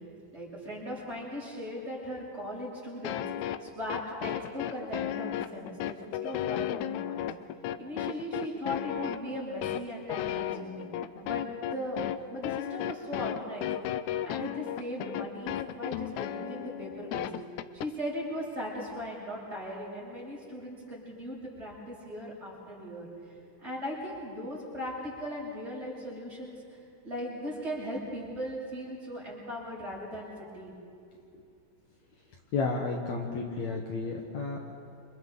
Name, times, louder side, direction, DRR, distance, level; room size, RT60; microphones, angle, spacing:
voice 1, 0.3-3.3 3.6-7.3 7.8-10.9 11.2-12.0 12.3-13.7 14.2-17.3 17.7-23.1 23.6-26.8 27.0-30.7, equal, 15° right, -6 dB, 7.6 m, -38 dB
sound 1, 3.0-17.9, left 11 dB, 80° left, 1.6 m, -34 dB
voice 2, 32.5-34.7, left 4 dB, 60° left, 0 dB, 2.5 m, -32 dB
29.5 x 27.0 x 4.0 m, 2.4 s
omnidirectional pair, 3.9 m